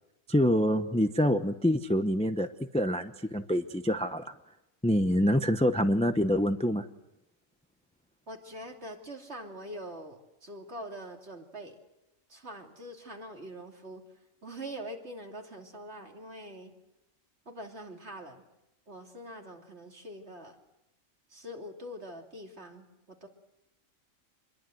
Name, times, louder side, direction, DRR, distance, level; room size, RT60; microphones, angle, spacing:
voice 1, 0.3-2.5 2.7-4.3 4.8-6.9, equal, 5° left, 8 dB, 0.7 m, -26 dB
voice 2, 8.3-11.8 12.3-14.0 14.4-16.7 17.4-18.4 18.9-20.6 21.3-23.3, equal, 50° right, 2 dB, 3.2 m, -44 dB
26.0 x 21.5 x 7.9 m, 0.90 s
omnidirectional pair, 1.4 m